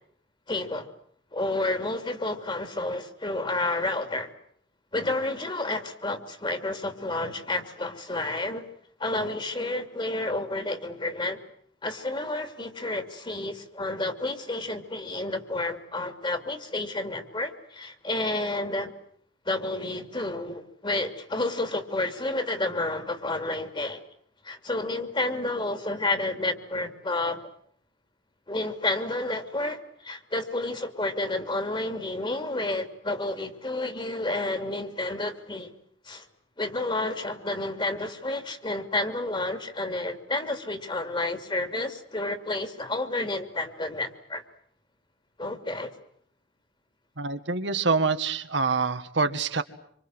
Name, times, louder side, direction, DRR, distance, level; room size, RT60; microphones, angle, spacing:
voice 1, 0.5-0.9 1.3-4.3 4.9-8.6 9.0-11.4 11.8-18.9 19.4-24.0 24.4-27.5 28.5-35.7 36.0-36.3 36.6-44.4 45.4-45.9, left 2 dB, 25° left, 8 dB, 2.8 m, -30 dB
voice 2, 47.2-49.6, right 4 dB, 70° right, 8 dB, 1.8 m, -26 dB
26.5 x 26.0 x 7.9 m, 0.64 s
head